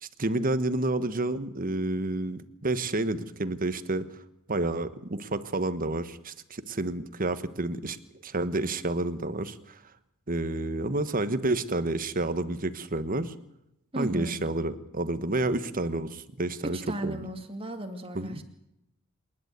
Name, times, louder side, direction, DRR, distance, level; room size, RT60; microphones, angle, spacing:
voice 1, 0.0-4.1 4.5-8.0 8.2-9.8 10.3-13.3 13.9-17.2 18.1-18.4, right 2 dB, 40° right, 12 dB, 1.3 m, -30 dB
voice 2, 13.9-14.4 16.7-18.4, right 1 dB, 25° right, 6 dB, 2.4 m, -35 dB
27.0 x 11.0 x 9.5 m, 0.85 s
head